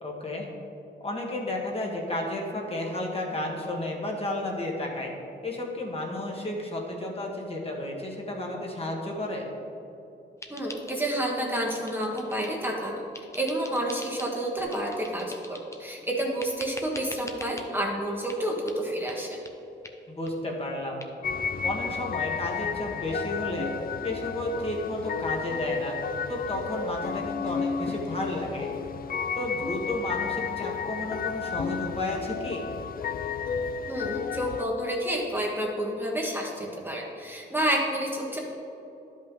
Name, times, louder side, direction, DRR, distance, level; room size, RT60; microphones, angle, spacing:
voice 1, 0.0-0.5 1.0-5.1 5.4-9.5 20.1-21.0 21.6-23.7 24.0-26.0 26.3-28.7 29.4-32.6, left 1 dB, 30° left, -1 dB, 1.5 m, -32 dB
sound 1, 10.4-11.3 11.5-12.7 13.1-14.3 14.7-15.9 16.4-17.7 18.3-18.4 18.7-18.8 19.1-19.2 19.4-19.5 19.8-20.0 20.2-20.3 20.6-20.7 21.0-21.1, left 2 dB, 15° left, 0.8 m, -44 dB
voice 2, 10.5-13.0 13.3-19.4 33.9-38.4, right 1 dB, 10° right, -2 dB, 1.3 m, -29 dB
sound 2, 21.2-34.6, left 6 dB, 50° left, 0.4 m, -32 dB
11.5 x 5.4 x 3.8 m, 2.9 s
cardioid pair, 80°, 19 cm